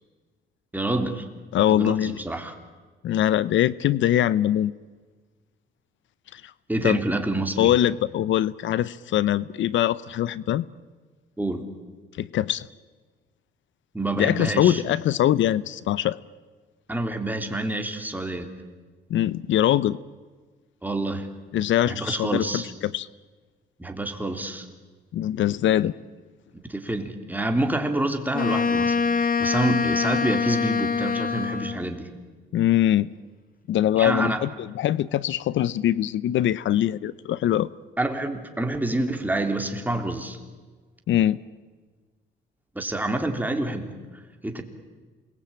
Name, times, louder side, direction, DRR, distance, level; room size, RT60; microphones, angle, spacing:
voice 1, 0.7-1.3 1.7-2.5 6.7-7.7 11.4-11.7 13.9-14.8 16.9-18.5 20.8-21.3 21.8-22.7 23.8-24.7 26.7-32.1 34.0-34.4 38.0-40.4 42.7-43.9 44.4-44.6, right 2 dB, 10° right, 5 dB, 3.4 m, -27 dB
voice 2, 1.5-2.2 3.0-4.7 6.3-6.5 6.8-7.0 7.6-10.7 12.2-12.7 14.2-16.2 19.1-20.0 21.5-23.1 25.1-25.9 32.5-33.1 33.7-37.7 41.1-41.4, left 12 dB, 70° left, 19 dB, 0.7 m, -22 dB
Wind instrument woodwind instrument, 28.3-31.9, left 5 dB, 45° left, 2.3 m, -24 dB
28.0 x 21.0 x 8.9 m, 1.4 s
cardioid pair, 90°, 20 cm